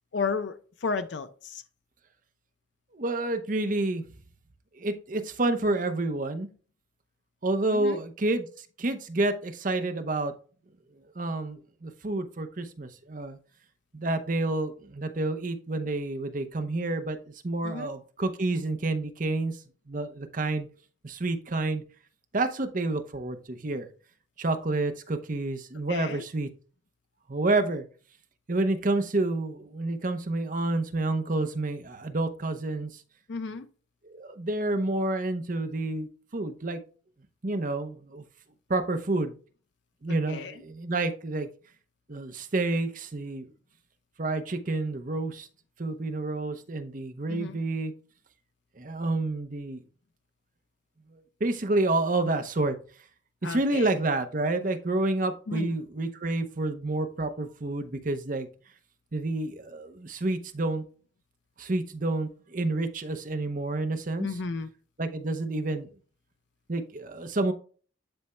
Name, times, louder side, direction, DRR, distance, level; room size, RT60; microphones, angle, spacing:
voice 1, 0.1-0.5 0.8-1.6 7.7-8.0 17.6-17.9 25.9-26.2 33.3-33.6 40.1-40.5 47.3-47.6 53.4-53.9 55.5-55.7 64.2-64.7, left 4 dB, 65° left, 0.5 m, -33 dB
voice 2, 2.9-4.0 4.7-6.5 7.4-10.3 11.2-13.4 13.9-17.2 17.4-19.6 19.9-20.7 21.0-21.8 22.3-23.9 24.4-26.5 27.3-27.9 28.5-33.0 34.1-36.8 37.4-38.2 38.7-39.4 40.0-41.5 42.1-43.5 44.2-45.5 45.8-47.9 48.8-49.8 51.1-52.8 53.4-58.5 59.1-60.8 61.6-64.4 65.0-65.9 66.7-67.5, right 2 dB, 40° right, 0.7 m, -29 dB
11.0 x 4.2 x 2.2 m
head